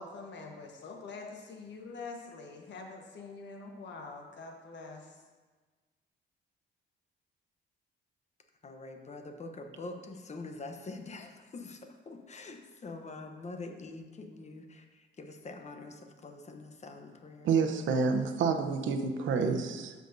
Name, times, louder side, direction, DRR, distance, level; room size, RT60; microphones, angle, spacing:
voice 1, 0.0-5.2, left 3 dB, 65° left, 2 dB, 1.2 m, -45 dB
voice 2, 8.6-17.5, left 3 dB, 35° left, 5 dB, 0.9 m, -45 dB
voice 3, 17.4-19.9, right 5 dB, 75° right, 6 dB, 0.8 m, -28 dB
13.0 x 5.2 x 2.7 m, 1.4 s
cardioid pair, 90°, 20 cm